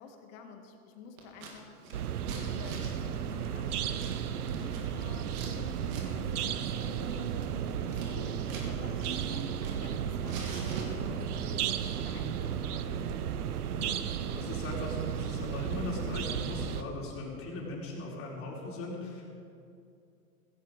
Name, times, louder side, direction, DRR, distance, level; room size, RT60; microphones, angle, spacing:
voice 1, 0.0-1.8 2.3-13.2 13.8-14.1, left 5 dB, 50° left, 4 dB, 2.5 m, -50 dB
Scissors, 1.2-1.5 1.8-5.5 5.8-6.1 6.3-6.5 6.8-8.7 9.0-9.9 10.2-11.4, right 4 dB, 65° right, 3.5 m, -44 dB
sound 1, 1.9-16.8, right 8 dB, 80° right, 1.0 m, -34 dB
voice 2, 14.3-19.3, left 2 dB, 30° left, -3 dB, 4.7 m, -39 dB
16.0 x 15.5 x 5.3 m, 2.5 s
hypercardioid pair, 115°, 44 cm